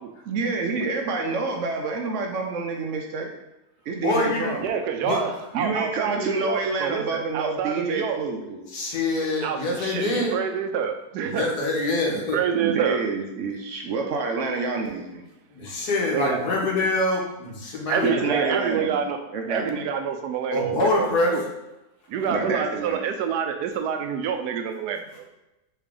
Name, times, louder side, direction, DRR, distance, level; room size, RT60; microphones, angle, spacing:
voice 1, 0.3-3.3 3.9-4.7 5.5-8.7 12.5-15.2 18.0-19.0 19.3-19.8 22.3-23.0, right 4 dB, 65° right, 2 dB, 0.8 m, -28 dB
voice 2, 4.0-4.5 5.0-5.2 8.7-10.3 11.2-12.4 15.5-18.1 20.5-21.3, left 2 dB, 85° left, -1 dB, 1.6 m, -25 dB
voice 3, 4.6-8.2 9.4-11.5 12.1-13.0 16.1-16.4 17.9-19.2 19.5-21.4 22.1-25.3, right 7 dB, 85° right, 6 dB, 1.1 m, -27 dB
4.0 x 3.4 x 3.6 m, 0.96 s
omnidirectional pair, 1.7 m